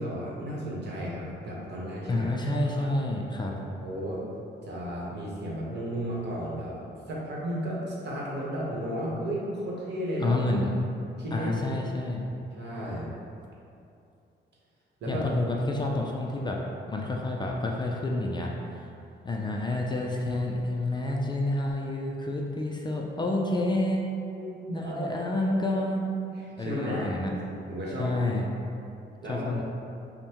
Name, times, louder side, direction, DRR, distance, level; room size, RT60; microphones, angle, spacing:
voice 1, 0.0-2.3 2.8-2.9 3.8-4.2 4.6-6.8 7.1-10.4 11.2-11.9 12.5-13.1 15.0-15.2 24.3-25.2 26.4-27.1 27.5-28.4 29.2-29.5, equal, 60° right, -5 dB, 1.0 m, -34 dB
voice 2, 2.1-3.6 10.2-10.7 11.3-12.2 15.1-16.6 16.9-18.5 19.2-24.1 24.7-26.1 26.6-27.3 28.0-28.5 29.3-29.6, left 2 dB, 25° left, -1 dB, 0.3 m, -29 dB
5.2 x 2.1 x 2.9 m, 2.6 s
cardioid pair, 90°, 20 cm